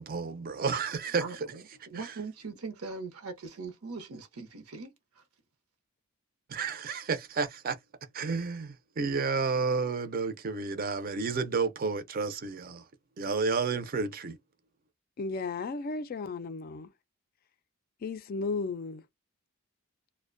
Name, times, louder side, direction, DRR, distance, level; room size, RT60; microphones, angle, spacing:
voice 1, 0.0-1.5 2.0-2.1 6.5-7.8 8.1-12.8 13.2-14.4, right 4 dB, 40° right, 0.5 m, -31 dB
voice 2, 1.2-5.2, right 4 dB, 85° right, 0.7 m, -41 dB
voice 3, 15.2-16.9 18.0-19.0, left 4 dB, 45° left, 0.3 m, -34 dB
2.5 x 2.1 x 2.5 m
head